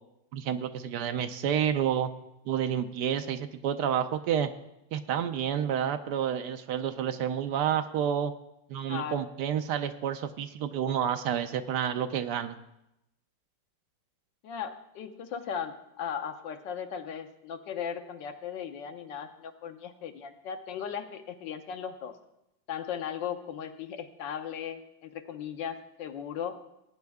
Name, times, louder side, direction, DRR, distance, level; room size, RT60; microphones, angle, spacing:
voice 1, 0.3-2.1 2.5-4.5 4.9-8.3 8.7-12.6, right 9 dB, 70° right, 9 dB, 1.2 m, -29 dB
voice 2, 8.9-9.2 14.4-22.1 22.7-26.6, left 8 dB, 75° left, 7 dB, 1.5 m, -37 dB
17.0 x 8.8 x 3.5 m, 0.86 s
omnidirectional pair, 2.0 m